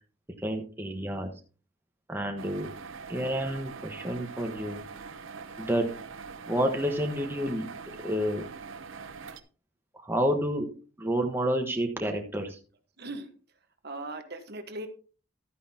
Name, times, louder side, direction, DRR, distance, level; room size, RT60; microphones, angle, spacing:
voice 1, 0.4-1.3 2.1-2.7 3.1-4.8 5.6-5.9 6.5-7.7 8.0-8.5 9.9-10.7 11.0-12.6, equal, 10° right, 3 dB, 1.2 m, -29 dB
sound 1, 2.4-9.4, right 5 dB, 70° right, 0.8 m, -43 dB
voice 2, 13.0-13.3 13.8-14.9, right 2 dB, 50° right, 7 dB, 1.3 m, -38 dB
12.5 x 9.3 x 2.8 m, 0.37 s
head